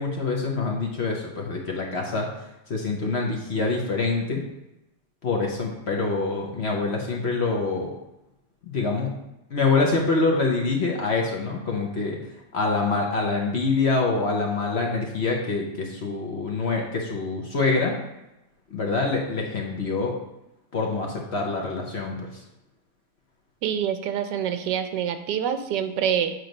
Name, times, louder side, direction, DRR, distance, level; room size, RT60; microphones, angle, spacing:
voice 1, 0.0-2.3 2.7-4.4 5.2-7.9 8.7-9.1 9.5-12.2 12.5-18.0 18.7-20.2 20.7-22.3, left 3 dB, 50° left, 0 dB, 0.9 m, -25 dB
voice 2, 23.6-26.3, right 9 dB, 85° right, 8 dB, 1.3 m, -26 dB
7.9 x 3.1 x 5.2 m, 0.93 s
omnidirectional pair, 1.8 m